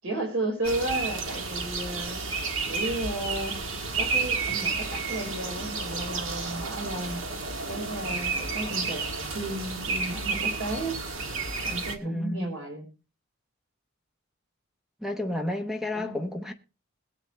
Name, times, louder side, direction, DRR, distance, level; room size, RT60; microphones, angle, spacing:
voice 1, 0.0-2.2 2.7-3.6 4.0-7.2 7.7-11.0 11.6-12.9 15.9-16.2, right 1 dB, 80° right, 5.1 m, -33 dB
sound 1, 0.6-12.0, right 4 dB, 65° right, 1.8 m, -31 dB
voice 2, 12.0-12.5 15.0-16.5, left 1 dB, ahead, 0.9 m, -31 dB
22.0 x 8.2 x 3.3 m
head